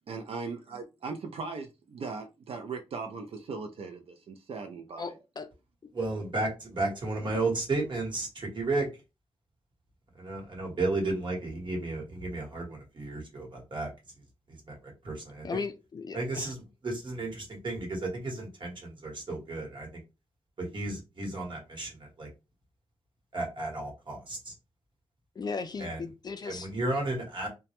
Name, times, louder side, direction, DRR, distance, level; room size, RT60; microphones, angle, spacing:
voice 1, 0.1-5.2, right 4 dB, 65° right, 0.3 m, -39 dB
voice 2, 5.9-6.5 6.8-8.9 10.1-13.9 14.5-15.6 16.1-20.0 20.6-22.3 23.3-24.5 25.8-26.0 26.4-27.5, right 2 dB, 50° right, 1.0 m, -33 dB
voice 3, 15.4-16.5 25.4-26.7, left 5 dB, 40° left, 0.3 m, -36 dB
2.1 x 2.0 x 2.8 m
wide cardioid pair, 110°, 10 cm